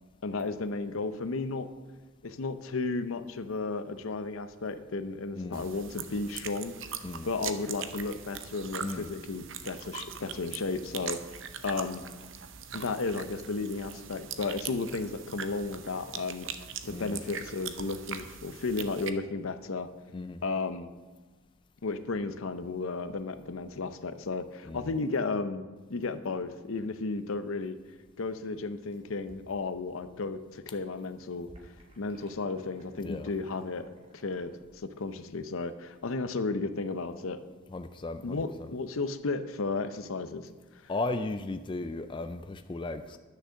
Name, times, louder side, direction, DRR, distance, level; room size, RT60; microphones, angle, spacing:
voice 1, 0.2-1.7 2.2-6.7 7.2-12.0 12.7-16.5 16.9-19.9 20.4-20.9 21.8-25.6 25.9-27.8 28.2-31.5 32.0-37.4 38.2-40.5, left 3 dB, 75° left, 11 dB, 0.6 m, -34 dB
voice 2, 5.3-5.7 7.0-7.3 8.8-9.1 16.9-17.2 20.1-20.4 24.6-24.9 33.0-33.3 37.7-38.8 40.9-43.2, left 2 dB, 25° left, 9 dB, 0.3 m, -36 dB
sound 1, 5.5-19.1, right 7 dB, 65° right, 0.6 m, -41 dB
sound 2, 28.8-30.2 30.5-34.5, equal, 30° right, 1.5 m, -57 dB
10.5 x 6.4 x 6.3 m, 1.2 s
head